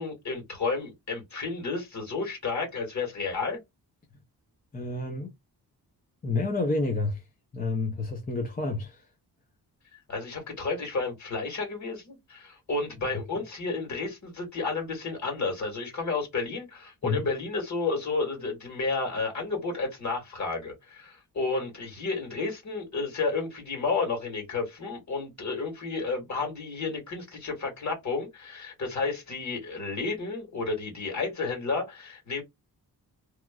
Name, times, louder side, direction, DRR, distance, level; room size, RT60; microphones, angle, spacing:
voice 1, 0.0-3.6 9.9-32.4, left 4 dB, 45° left, 1.8 m, -31 dB
voice 2, 4.7-5.3 6.2-7.2 7.5-9.1 17.0-17.3, left 3 dB, 20° left, 0.6 m, -29 dB
3.0 x 2.4 x 2.3 m
wide cardioid pair, 120°, 39 cm